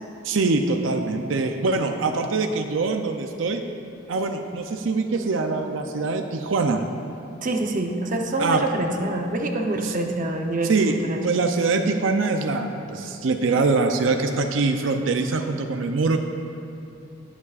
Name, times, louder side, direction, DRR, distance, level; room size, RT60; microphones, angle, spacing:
voice 1, 0.2-3.6 4.1-6.8 8.4-8.6 9.8-9.9 10.7-10.9 11.2-16.2, right 3 dB, 90° right, 5 dB, 0.6 m, -23 dB
voice 2, 7.4-10.7 11.0-11.3, right 2 dB, 45° right, 3 dB, 0.8 m, -26 dB
19.5 x 7.2 x 2.5 m, 2.7 s
head